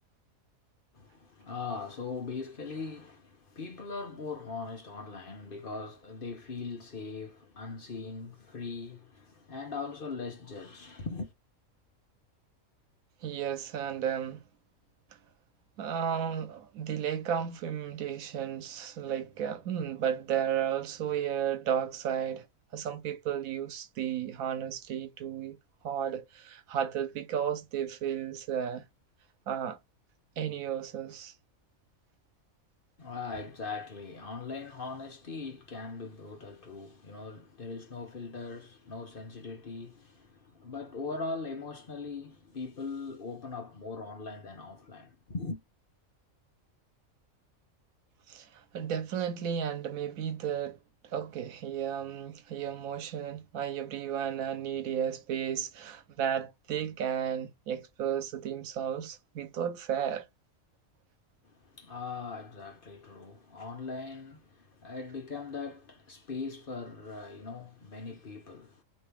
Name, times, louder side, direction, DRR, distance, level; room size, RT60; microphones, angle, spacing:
voice 1, 0.9-11.3 33.0-45.6 61.4-68.8, left 4 dB, 45° left, 1.1 m, -40 dB
voice 2, 13.2-14.4 15.8-22.5 22.7-25.6 25.8-28.8 29.5-29.8 30.4-31.3 48.3-60.3, right 8 dB, 90° right, 1.2 m, -33 dB
3.1 x 2.7 x 3.4 m
omnidirectional pair, 1.4 m